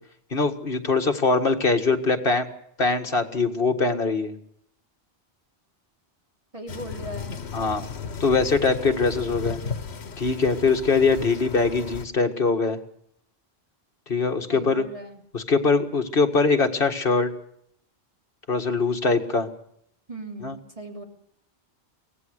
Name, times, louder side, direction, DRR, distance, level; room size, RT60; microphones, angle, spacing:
voice 1, 0.3-2.5 2.8-4.4 7.5-7.9 8.2-9.6 10.2-12.8 14.1-14.9 15.3-17.3 18.5-19.5 20.4-20.6, left 4 dB, 60° left, 5 dB, 2.0 m, -22 dB
voice 2, 6.5-7.4 14.5-15.2 20.1-21.0, right 1 dB, 35° right, 3 dB, 3.3 m, -38 dB
sound 1, 6.7-12.0, left 5 dB, 80° left, 1.6 m, -35 dB
24.0 x 17.5 x 6.6 m, 0.69 s
omnidirectional pair, 1.1 m